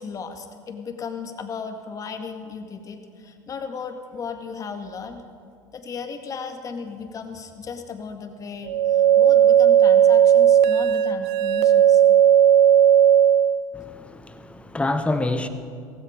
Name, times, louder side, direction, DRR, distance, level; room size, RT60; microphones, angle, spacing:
voice 1, 0.0-5.2 5.7-12.0, left 5 dB, 35° left, 2.0 m, -35 dB
sound 1, 8.7-13.6, right 10 dB, 65° right, 0.8 m, -15 dB
voice 2, 13.7-15.5, left 2 dB, 10° left, 1.4 m, -27 dB
16.5 x 16.0 x 5.2 m
hypercardioid pair, 80°, 10 cm